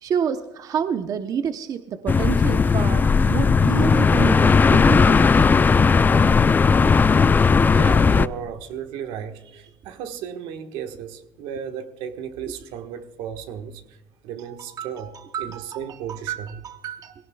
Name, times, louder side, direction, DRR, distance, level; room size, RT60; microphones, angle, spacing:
voice 1, 0.0-5.5 14.5-17.1, right 7 dB, 45° right, 0.8 m, -29 dB
sound 1, 2.1-8.3, left 5 dB, 20° left, 0.4 m, -16 dB
voice 2, 7.6-15.1 15.4-16.6, right 8 dB, 80° right, 1.4 m, -34 dB
19.0 x 17.0 x 2.3 m
supercardioid pair, 100°, 8 cm